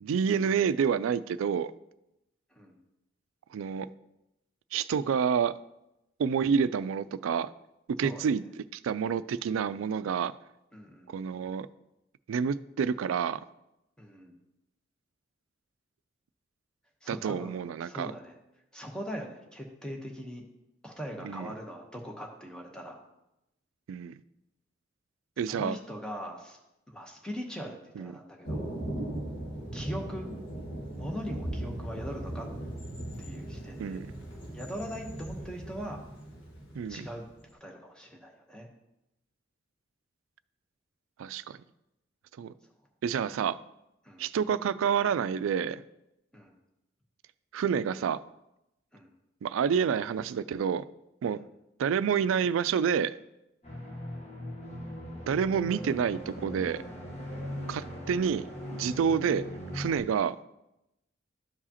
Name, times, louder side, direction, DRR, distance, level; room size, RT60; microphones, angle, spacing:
voice 1, 0.0-1.7 3.5-3.9 4.7-5.5 6.2-7.5 8.0-8.4 8.7-10.3 11.1-11.7 12.3-13.4 17.1-18.1 21.2-21.5 23.9-24.1 25.4-25.8 28.0-28.1 33.8-34.1 36.8-37.1 41.2-41.6 42.4-42.5 43.0-43.6 44.2-45.8 47.5-48.2 49.4-50.8 51.2-51.4 51.8-53.2 55.3-56.8 57.7-59.5 59.7-60.4, right 7 dB, 90° right, 16 dB, 0.3 m, -28 dB
voice 2, 10.7-11.1 14.0-14.3 17.0-18.4 18.7-20.4 20.8-23.0 25.5-26.6 26.9-28.7 29.7-30.3 31.0-32.5 33.2-34.0 34.5-36.0 36.9-37.2 37.6-38.7 44.0-44.3 46.3-46.5 48.9-49.1 51.3-51.4 53.7-53.9 57.3-57.5, equal, 5° left, 1 dB, 0.9 m, -41 dB
Thunder, 28.4-37.4, right 1 dB, 65° left, 1.6 m, -38 dB
sound 1, 53.6-60.0, equal, 35° left, 1.1 m, -40 dB
12.5 x 4.8 x 2.9 m, 0.89 s
head